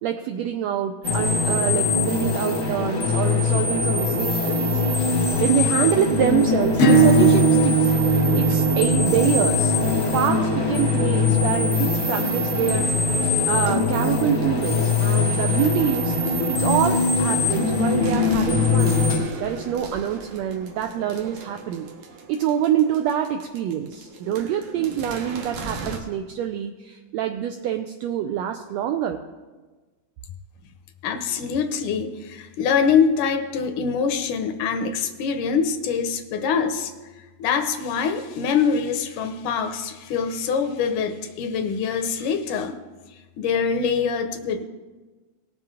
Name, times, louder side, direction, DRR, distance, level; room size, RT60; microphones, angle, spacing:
voice 1, 0.0-9.8 10.1-13.1 13.5-16.2 16.5-19.1 19.4-21.9 22.3-29.2, right 9 dB, 85° right, 7 dB, 1.5 m, -26 dB
sound 1, 1.0-19.2, left 3 dB, 35° left, 0.7 m, -22 dB
Acoustic guitar / Strum, 6.8-12.0, right 4 dB, 55° left, 1.1 m, -21 dB
sound 2, 13.2-26.0, right 3 dB, 70° right, 2.4 m, -39 dB
voice 2, 31.0-36.9 37.4-42.8 43.4-44.6, left 6 dB, 80° left, 7 dB, 2.2 m, -24 dB
18.5 x 7.5 x 3.7 m, 1.3 s
omnidirectional pair, 3.6 m